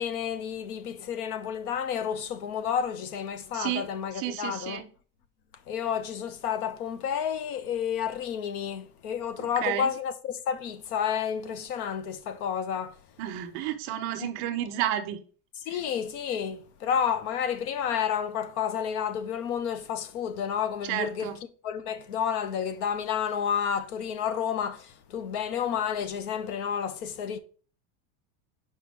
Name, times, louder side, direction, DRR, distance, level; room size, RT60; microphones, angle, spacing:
voice 1, 0.0-4.8 5.7-13.0 14.2-14.3 15.7-21.3 21.6-27.4, left 8 dB, 85° left, 1.0 m, -30 dB
voice 2, 3.5-3.9 4.1-4.9 9.4-9.9 13.2-15.2 15.7-15.8 20.8-21.4, right 11 dB, 30° right, 0.4 m, -31 dB
6.4 x 5.0 x 3.4 m
supercardioid pair, 180°, 43 cm